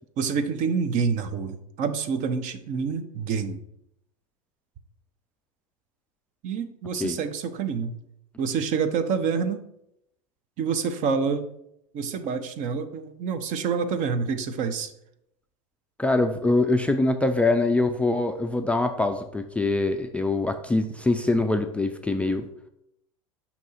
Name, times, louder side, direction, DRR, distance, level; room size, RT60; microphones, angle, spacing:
voice 1, 0.2-3.6 6.4-7.9 8.4-9.6 10.6-11.5 11.9-14.9, right 5 dB, 45° right, 10 dB, 0.7 m, -27 dB
voice 2, 16.0-22.5, left 2 dB, 5° left, 5 dB, 0.4 m, -24 dB
5.9 x 2.9 x 5.5 m, 0.78 s
hypercardioid pair, 95°, 19 cm